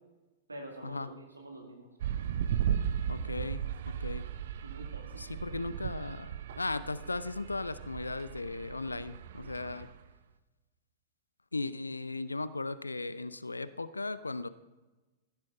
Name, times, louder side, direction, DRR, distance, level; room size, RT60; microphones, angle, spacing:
voice 1, 0.5-1.9 4.6-5.4, right 1 dB, 80° right, 1 dB, 2.3 m, -46 dB
sound 1, 2.0-10.0, right 9 dB, 55° right, 0.7 m, -36 dB
voice 2, 3.1-3.6 4.0-4.2 5.2-6.3 6.6-9.9 11.5-14.5, left 3 dB, 80° left, 15 dB, 0.5 m, -37 dB
16.0 x 10.5 x 5.5 m, 1.2 s
figure-of-eight pair, 100°, 0 cm